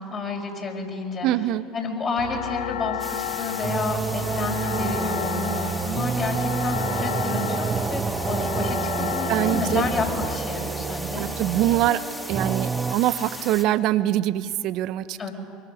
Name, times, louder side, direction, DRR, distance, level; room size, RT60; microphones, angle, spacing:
voice 1, 0.0-1.3 1.7-11.3 15.2-15.3, left 3 dB, 40° left, -2 dB, 5.0 m, -30 dB
voice 2, 1.2-1.7 9.0-9.8 11.2-15.3, right 13 dB, 55° right, 15 dB, 0.9 m, -24 dB
sound 1, 2.2-10.4, left 12 dB, 70° left, 0.8 m, -32 dB
sound 2, 3.0-13.6, left 1 dB, 10° left, 3.1 m, -37 dB
sound 3, 3.6-12.9, right 5 dB, 25° right, 0.7 m, -28 dB
25.0 x 24.0 x 6.5 m, 2.2 s
hypercardioid pair, 70°, 0 cm